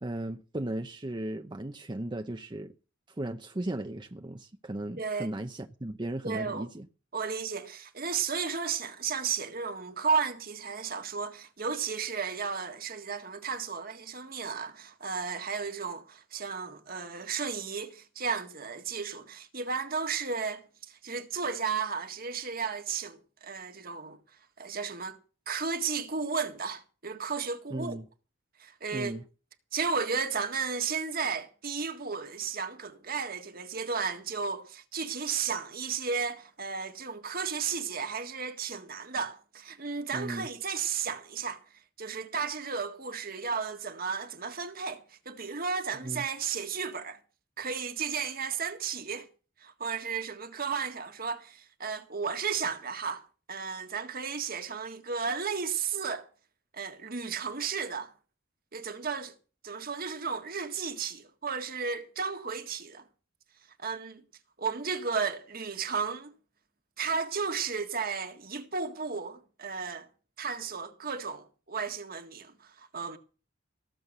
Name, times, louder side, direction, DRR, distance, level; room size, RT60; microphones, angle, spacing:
voice 1, 0.0-2.7 3.1-6.9 27.7-28.1 28.9-29.2 40.1-40.5 46.0-46.2, right 1 dB, 25° right, 0.7 m, -36 dB
voice 2, 5.0-5.3 6.2-6.7 7.1-24.2 24.6-25.2 25.5-28.0 28.6-29.1 29.7-41.6 42.0-47.2 47.6-49.3 49.6-53.2 53.5-56.3 56.7-58.1 58.7-59.3 59.6-63.0 63.8-64.2 64.6-66.3 67.0-70.1 70.4-73.2, right 5 dB, 50° right, 1.7 m, -34 dB
18.5 x 7.7 x 6.8 m
head